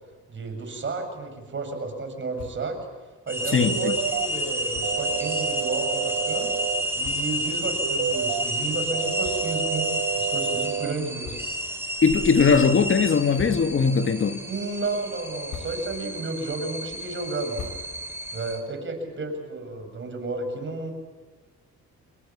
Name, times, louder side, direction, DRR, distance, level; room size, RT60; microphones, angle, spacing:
voice 1, 0.3-2.8 3.3-6.5 7.0-9.9 10.2-11.4 14.5-17.6 18.3-20.9, right 3 dB, 40° right, 7.2 m, -32 dB
sound 1, 2.3-2.8 3.1-3.2 3.5-3.7 4.7-5.1 5.9-6.0 6.6-6.7 7.0-7.5 8.1-8.2 9.2-9.8 10.2-10.3 11.2-11.8 12.2-12.7 13.1-14.0 14.4-14.8 15.2-16.1 16.5-18.3, left 6 dB, 70° left, 4.9 m, -43 dB
sound 2, 3.3-18.6, equal, 10° right, 5.3 m, -30 dB
voice 2, 3.5-3.9 12.0-14.4, left 5 dB, 40° left, 1.5 m, -20 dB
sound 3, 3.7-4.3 4.8-6.8 7.8-8.4 8.9-10.9, right 9 dB, 60° right, 1.5 m, -29 dB
27.0 x 22.0 x 7.2 m
cardioid pair, 90°, 30 cm